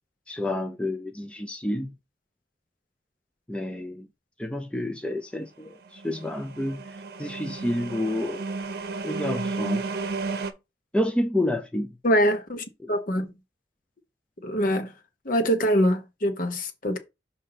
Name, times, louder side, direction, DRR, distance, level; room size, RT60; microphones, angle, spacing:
voice 1, 0.3-1.9 3.5-4.1 4.4-6.8 7.2-8.4 9.0-9.8 10.9-11.9 12.8-12.9, left 1 dB, 5° left, 0.4 m, -29 dB
sound 1, 5.9-10.5, right 3 dB, 55° right, 0.8 m, -33 dB
voice 2, 12.0-13.3 14.4-14.9 15.2-17.0, equal, 50° left, 1.0 m, -24 dB
6.6 x 2.7 x 5.7 m
head